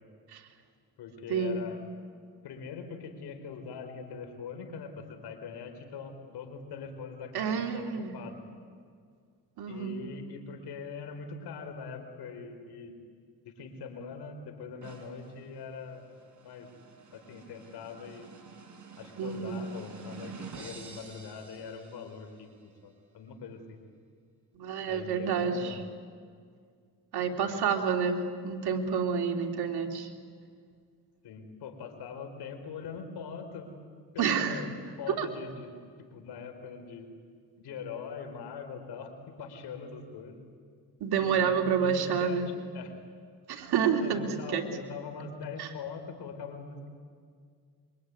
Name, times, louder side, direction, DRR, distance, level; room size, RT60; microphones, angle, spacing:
voice 1, 1.0-1.8 2.4-8.4 9.6-13.0 13.4-16.0 16.4-16.7 17.1-18.3 19.0-22.5 22.8-23.8 24.8-25.8 27.4-27.6 31.2-33.7 34.1-34.7 35.0-37.1 37.6-40.4 41.1-42.4 42.7-42.9 44.0-46.9, left 5 dB, 80° left, 6 dB, 4.7 m, -42 dB
voice 2, 7.3-8.1 9.6-10.0 19.2-19.7 24.5-25.8 27.1-30.1 34.2-34.6 35.2-35.3 41.0-42.5 43.5-44.6 45.6-45.7, right 6 dB, 70° right, 4 dB, 3.1 m, -29 dB
sound 1, 14.8-22.4, right 5 dB, 45° right, 5.6 m, -49 dB
25.5 x 23.5 x 9.8 m, 2.1 s
cardioid pair, 75°, 39 cm